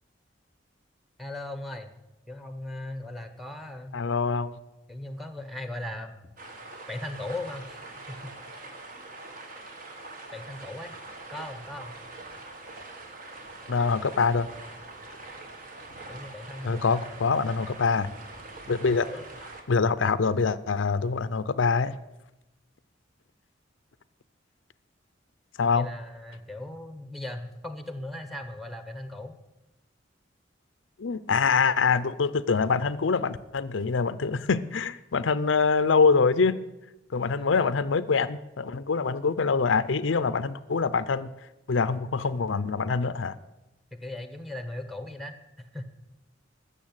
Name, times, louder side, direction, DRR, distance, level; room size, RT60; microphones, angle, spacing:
voice 1, 1.2-1.9 2.3-4.0 4.9-6.2 6.9-7.8 8.1-8.7 10.3-10.9 11.3-11.9 16.1-17.3 19.0-19.3 25.7-29.3 37.4-37.7 41.9-42.1 43.9-45.9, left 1 dB, ahead, 9 dB, 1.1 m, -38 dB
voice 2, 3.9-4.5 13.7-14.5 16.6-18.1 18.7-19.1 19.7-21.9 25.6-25.9 31.0-36.6 37.1-41.3 41.7-43.4, left 5 dB, 85° left, 15 dB, 0.6 m, -24 dB
sound 1, 6.4-19.6, right 2 dB, 45° right, 1.8 m, -44 dB
14.0 x 6.9 x 8.8 m, 0.98 s
head